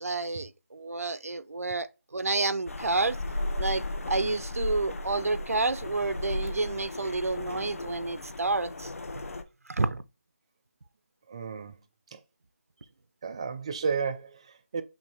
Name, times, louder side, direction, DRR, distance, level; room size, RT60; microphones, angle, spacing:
voice 1, 0.0-1.9 2.1-3.2 3.6-3.8 4.1-8.9 9.7-10.0, right 3 dB, 90° right, 0.5 m, -29 dB
sound 1, 2.7-9.4, left 2 dB, 70° left, 0.8 m, -35 dB
voice 2, 11.3-11.8 12.1-12.2 13.2-14.8, right 5 dB, 25° right, 0.4 m, -32 dB
5.9 x 2.6 x 3.3 m
figure-of-eight pair, 165°, 8 cm